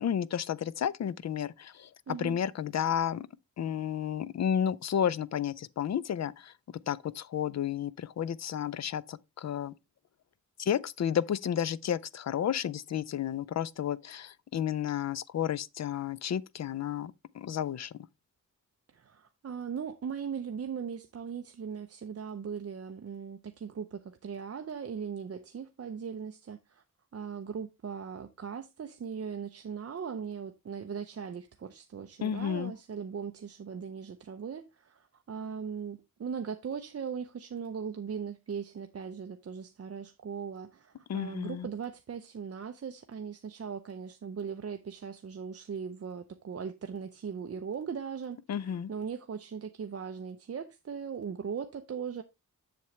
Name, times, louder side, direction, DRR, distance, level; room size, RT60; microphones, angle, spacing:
voice 1, 0.0-3.3 3.6-6.5 6.9-9.7 10.6-17.9 32.2-32.7 41.1-41.7 48.5-48.9, left 9 dB, 50° left, 0.4 m, -32 dB
voice 2, 2.1-2.4 18.9-26.8 27.1-52.2, right 6 dB, 45° right, 0.6 m, -39 dB
7.6 x 7.0 x 3.1 m
wide cardioid pair, 130°, 34 cm